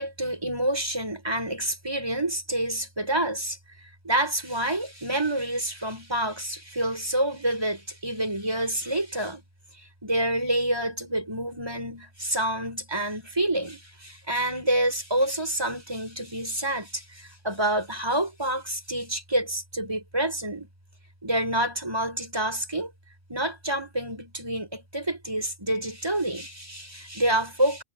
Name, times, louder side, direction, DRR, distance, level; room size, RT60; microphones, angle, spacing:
voice 1, 0.0-3.6 4.0-9.4 10.0-20.7 21.2-22.9 23.3-27.8, right 1 dB, 20° right, 5.6 m, -28 dB
omnidirectional pair, 1.2 m